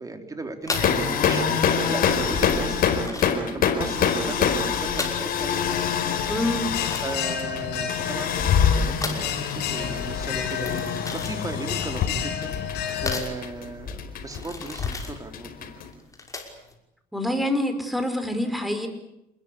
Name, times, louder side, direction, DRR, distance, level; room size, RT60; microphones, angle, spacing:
voice 1, 0.0-5.8 6.6-6.7 7.0-10.8 11.1-15.7, right 3 dB, 20° right, 5 dB, 4.0 m, -37 dB
sound 1, 0.6-16.7, left 3 dB, 20° left, 5.8 m, -37 dB
sound 2, 0.7-15.9, left 7 dB, 60° left, 4.8 m, -25 dB
Bell, 5.7-13.2, left 9 dB, 75° left, 6.0 m, -31 dB
voice 2, 6.3-6.7 17.1-18.9, left 1 dB, ahead, 7 dB, 5.3 m, -26 dB
28.0 x 21.0 x 8.7 m, 0.84 s
cardioid pair, 110°, 17 cm